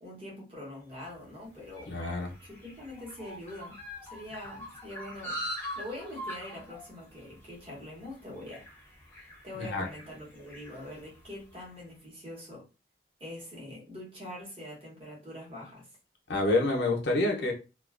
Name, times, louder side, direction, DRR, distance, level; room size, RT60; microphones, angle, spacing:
voice 1, 0.0-1.9 2.5-5.4 5.8-8.6 9.4-12.7 13.2-15.9, left 1 dB, 30° right, 0.9 m, -44 dB
sound 1, 1.0-11.6, equal, 10° left, 0.5 m, -43 dB
voice 2, 1.9-2.3 9.6-9.9 16.3-17.5, left 2 dB, 70° left, 0.6 m, -27 dB
2.3 x 2.2 x 2.3 m
head